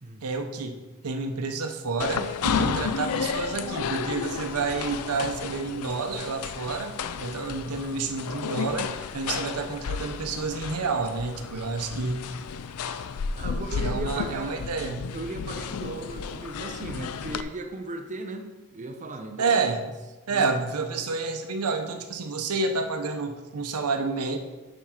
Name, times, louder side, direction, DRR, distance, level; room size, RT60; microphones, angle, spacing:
voice 1, 0.2-12.3 13.8-15.1 19.4-19.8 20.3-24.4, right 4 dB, 85° right, 6 dB, 0.8 m, -29 dB
sound 1, 2.0-17.4, left 6 dB, 80° left, 0.4 m, -32 dB
voice 2, 13.4-14.6 15.1-18.5 18.7-19.6 20.3-20.5, right 2 dB, 35° right, 4 dB, 0.6 m, -36 dB
7.0 x 4.8 x 5.8 m, 1.2 s
head